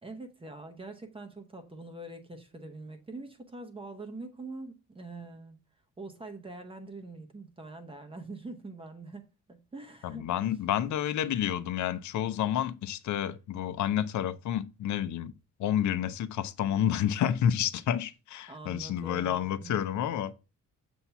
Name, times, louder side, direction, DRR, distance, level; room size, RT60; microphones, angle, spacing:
voice 1, 0.0-5.6 6.0-10.3 18.5-19.9, right 2 dB, 15° right, 0.8 m, -44 dB
voice 2, 10.0-15.3 15.6-20.3, left 10 dB, 70° left, 0.6 m, -29 dB
7.0 x 2.8 x 5.6 m
wide cardioid pair, 175°, 30 cm